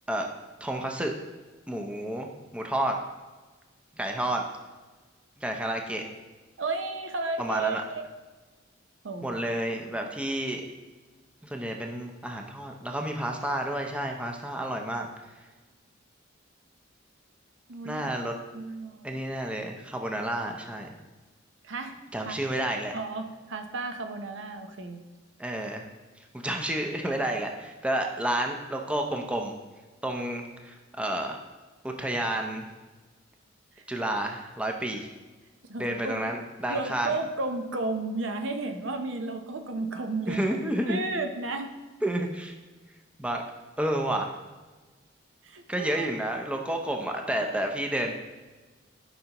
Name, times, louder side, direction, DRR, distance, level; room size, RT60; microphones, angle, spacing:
voice 1, 0.6-1.1 1.7-2.3 2.5-3.0 3.9-4.5 5.4-6.1 7.4-7.8 9.2-10.6 11.4-15.1 17.8-18.3 19.0-20.9 22.1-22.9 25.4-25.8 26.3-29.5 30.0-31.4 31.8-32.7 33.9-35.1 35.8-37.1 40.3-41.0 42.0-42.5 43.2-43.4 43.8-44.3 45.7-48.2, right 1 dB, 5° right, 2 dB, 0.6 m, -30 dB
voice 2, 6.6-8.1 9.0-9.4 17.7-18.1 18.5-19.0 21.6-22.4 22.9-25.0 33.8-33.9 35.7-36.2 36.7-40.6 40.9-41.7 45.4-46.1, right 3 dB, 70° right, 6 dB, 0.7 m, -33 dB
13.0 x 5.5 x 2.9 m, 1.3 s
head